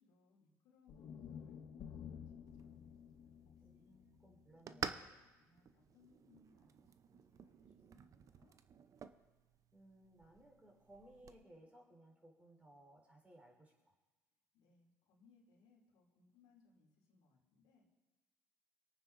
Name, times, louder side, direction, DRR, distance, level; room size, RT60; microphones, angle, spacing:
voice 1, 0.0-2.8 3.7-3.9 4.6-8.6 14.5-17.8, left 4 dB, 80° left, -2 dB, 2.9 m, -71 dB
sound 1, 0.9-5.1, left 8 dB, 60° left, 1.1 m, -53 dB
sound 2, 2.5-11.4, right 7 dB, 45° right, 0.6 m, -51 dB
voice 2, 3.6-5.2 9.7-13.9, right 1 dB, 20° right, 0 dB, 4.1 m, -62 dB
27.0 x 9.0 x 2.6 m, 1.2 s
supercardioid pair, 80°, 8 cm